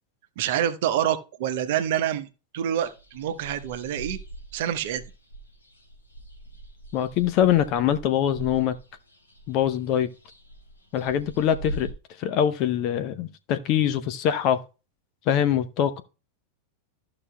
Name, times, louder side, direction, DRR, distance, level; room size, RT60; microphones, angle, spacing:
voice 1, 0.4-2.3 2.5-4.2 4.5-5.0, right 10 dB, 50° right, 0.9 m, -26 dB
sound 1, 2.8-11.9, right 2 dB, 80° left, 2.2 m, -43 dB
voice 2, 6.9-8.7 9.5-10.1 10.9-11.9 12.2-14.6 15.3-16.0, left 10 dB, 40° left, 0.7 m, -23 dB
14.0 x 5.8 x 2.2 m
figure-of-eight pair, 90°, 0 cm